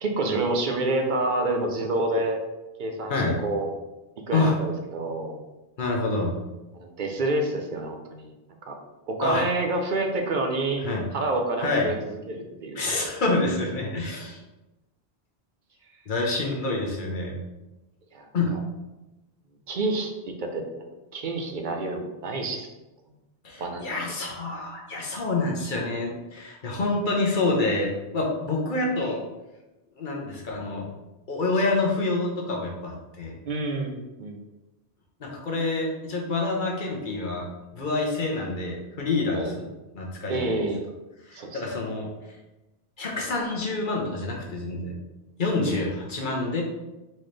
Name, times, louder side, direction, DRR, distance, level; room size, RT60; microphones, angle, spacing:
voice 1, 0.0-2.4 2.8-3.1 3.4-3.7 4.3-5.4 6.7-8.3 8.6-8.8 9.1-10.8 11.1-13.1 18.1-18.6 19.7-20.6 21.1-22.7 23.6-23.9 33.4-34.4 39.3-39.5 40.3-40.8 41.3-41.8 45.6-45.8, right 2 dB, 55° right, 4 dB, 0.8 m, -28 dB
voice 2, 5.8-6.3 9.2-9.4 10.8-11.0 11.6-11.9 12.7-14.4 16.1-17.4 18.3-18.5 23.4-29.2 30.0-30.9 31.3-33.4 35.2-37.4 37.7-39.7 39.9-40.6 41.3-42.1 43.0-44.9 45.4-46.6, left 2 dB, 50° left, -1 dB, 1.0 m, -27 dB
4.3 x 3.8 x 3.2 m, 1.0 s
omnidirectional pair, 1.1 m